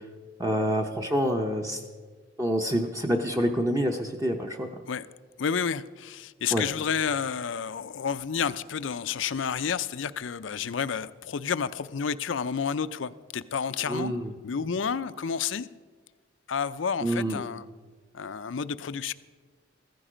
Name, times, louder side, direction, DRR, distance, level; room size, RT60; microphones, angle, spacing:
voice 1, 0.4-1.8 2.4-4.7 6.5-6.6 13.9-14.3 17.0-17.4, equal, 15° right, 0.7 m, -27 dB
voice 2, 5.4-14.1 14.4-15.7 16.5-17.7 18.1-19.1, left 6 dB, 80° left, 0.5 m, -30 dB
15.0 x 14.5 x 5.0 m
head